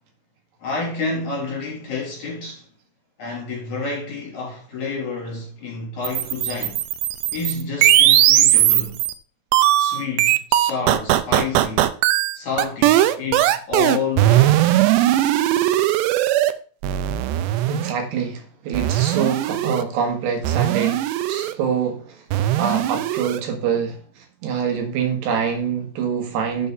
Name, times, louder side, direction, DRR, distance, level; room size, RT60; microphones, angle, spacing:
voice 1, 0.6-2.6 3.2-6.8 7.3-9.0 9.8-11.9 12.3-14.6, left 4 dB, 45° left, 4.1 m, -29 dB
sound 1, 6.1-9.1 9.5-16.5 16.8-17.9 18.7-19.8 20.4-21.5 22.3-23.4, right 13 dB, 90° right, 2.8 m, -18 dB
voice 2, 17.7-22.2 22.6-26.7, right 7 dB, 75° right, 3.5 m, -25 dB
7.2 x 6.5 x 6.7 m
omnidirectional pair, 5.0 m